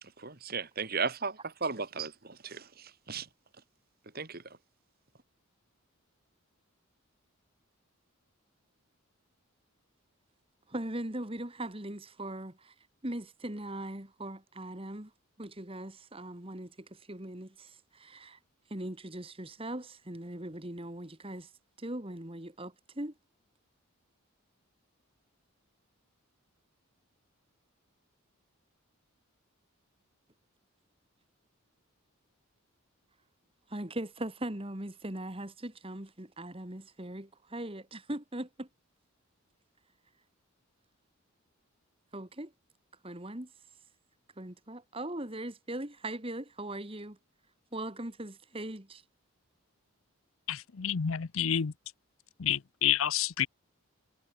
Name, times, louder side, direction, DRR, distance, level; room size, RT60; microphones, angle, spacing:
voice 1, 0.0-3.3 4.1-4.6, right 5 dB, 40° right, 1.9 m, -36 dB
voice 2, 10.7-12.7 13.0-15.1 15.4-18.4 18.7-21.5 21.8-23.1 33.7-38.7 42.1-42.5 43.0-43.5 44.4-47.2 47.7-49.0, right 1 dB, 25° right, 1.9 m, -40 dB
voice 3, 50.5-51.7 52.4-53.5, left 10 dB, 65° left, 0.6 m, -29 dB
head